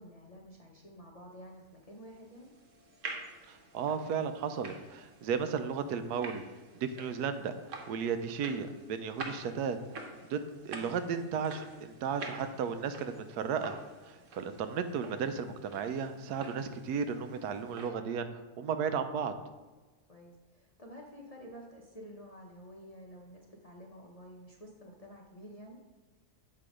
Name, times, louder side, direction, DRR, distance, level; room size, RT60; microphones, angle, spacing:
voice 1, 0.0-2.5 20.1-25.8, equal, 35° left, -2 dB, 0.6 m, -50 dB
sound 1, 1.9-17.9, right 3 dB, 55° right, 1.2 m, -48 dB
voice 2, 3.5-6.4 6.7-7.6 7.9-10.4 10.6-13.8 14.0-18.3 18.6-19.3, right 6 dB, 90° right, 9 dB, 1.1 m, -34 dB
7.6 x 3.8 x 4.9 m, 1.2 s
omnidirectional pair, 1.6 m